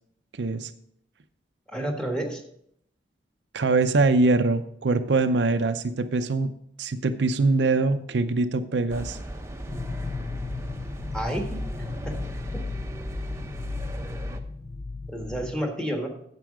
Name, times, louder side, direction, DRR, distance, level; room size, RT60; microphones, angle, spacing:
voice 1, 0.4-0.7 3.5-6.5 6.8-9.2, right 3 dB, 70° right, 9 dB, 0.6 m, -23 dB
voice 2, 1.7-2.4 11.1-11.7 12.0-12.2 12.5-12.6 15.1-16.1, right 1 dB, 5° left, 2 dB, 1.4 m, -30 dB
sound 1, 8.9-14.4, right 1 dB, 15° right, 0.7 m, -37 dB
sound 2, 9.7-15.5, left 3 dB, 30° left, 0.4 m, -35 dB
9.3 x 7.5 x 5.0 m, 0.70 s
head